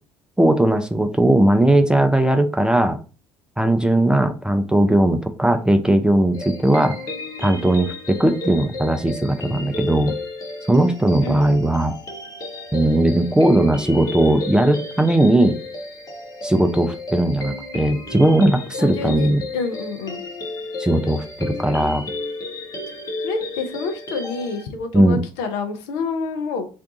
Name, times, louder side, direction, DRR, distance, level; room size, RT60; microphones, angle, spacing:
voice 1, 0.4-3.0 3.6-7.0 7.4-10.2 10.7-11.9 12.7-15.6 16.4-19.4 20.8-22.0 24.9-25.2, right 1 dB, 5° right, 7 dB, 0.4 m, -18 dB
sound 1, 6.3-24.6, left 2 dB, 25° left, 0.9 m, -33 dB
voice 2, 11.2-11.6 18.8-20.2 23.2-26.7, left 4 dB, 65° left, 6 dB, 0.6 m, -28 dB
2.6 x 2.3 x 3.7 m, 0.35 s
figure-of-eight pair, 55°, 13 cm